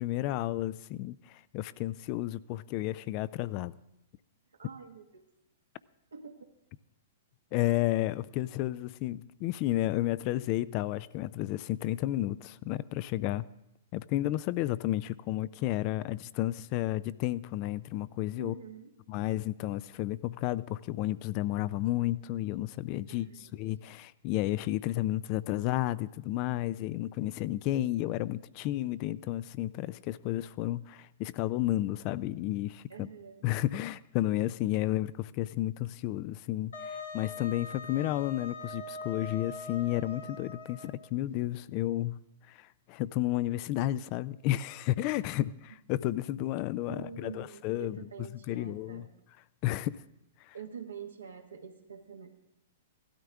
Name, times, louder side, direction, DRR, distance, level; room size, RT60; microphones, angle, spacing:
voice 1, 0.0-3.7 7.5-13.5 13.9-18.5 19.1-33.1 33.4-42.2 42.5-48.0 48.5-49.1 49.6-50.0 50.5-50.6, left 15 dB, 40° left, 0.4 m, -32 dB
voice 2, 4.5-5.2 6.1-6.5 18.4-19.0 23.1-23.5 32.9-33.5 46.9-49.1 50.5-52.3, right 7 dB, 85° right, 1.5 m, -46 dB
Wind instrument woodwind instrument, 36.7-41.1, left 3 dB, 80° left, 2.0 m, -42 dB
16.0 x 12.5 x 3.6 m
hypercardioid pair, 115°, 0 cm